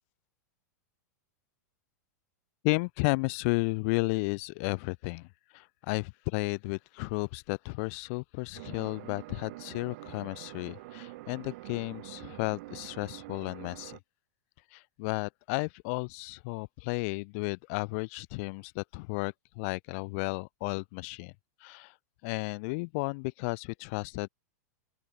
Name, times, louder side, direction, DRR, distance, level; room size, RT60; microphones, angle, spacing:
voice 1, 2.6-5.3 5.5-14.0 14.7-21.3 21.6-21.9 22.2-24.3, left 30 dB, 55° left, 0.7 m, -33 dB
sound 1, 8.5-14.0, right 20 dB, 60° right, 1.2 m, -46 dB
open air
hypercardioid pair, 105°, 9 cm